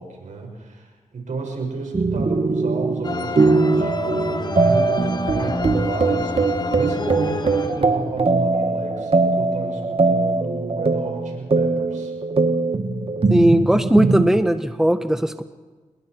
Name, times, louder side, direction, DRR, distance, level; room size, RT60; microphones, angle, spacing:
voice 1, 0.0-12.1, right 3 dB, 80° right, 2 dB, 6.1 m, -32 dB
sound 1, 1.9-14.3, right 3 dB, 50° right, 2.1 m, -21 dB
sound 2, 3.0-8.3, left 3 dB, 35° left, 1.3 m, -29 dB
voice 2, 13.3-15.4, equal, 5° right, 9 dB, 1.3 m, -18 dB
29.5 x 21.0 x 4.7 m, 1.3 s
cardioid pair, 55°, 13 cm